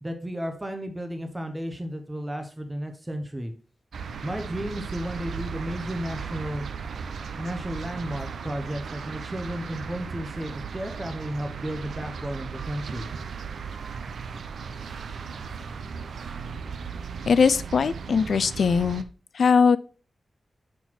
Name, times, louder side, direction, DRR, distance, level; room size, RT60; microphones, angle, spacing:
voice 1, 0.0-3.5 4.2-6.6 7.3-13.1, equal, 10° right, 5 dB, 0.7 m, -33 dB
sound 1, 3.9-19.0, right 6 dB, 80° right, 0.5 m, -36 dB
voice 2, 17.3-19.0 19.3-19.8, left 5 dB, 65° left, 15 dB, 0.4 m, -20 dB
5.9 x 4.4 x 4.2 m, 0.37 s
wide cardioid pair, 160°, 0 cm